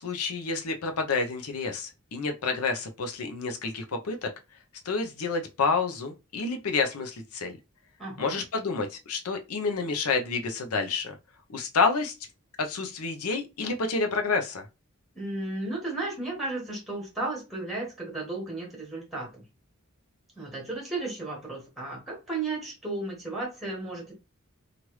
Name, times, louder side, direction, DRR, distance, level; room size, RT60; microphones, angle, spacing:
voice 1, 0.0-4.3 4.9-7.6 8.2-11.1 11.5-12.1 12.6-14.6, left 4 dB, 90° left, 0.6 m, -29 dB
voice 2, 8.0-8.4 15.1-19.5 20.4-24.1, right 2 dB, ahead, 1.1 m, -34 dB
3.1 x 2.5 x 3.0 m
head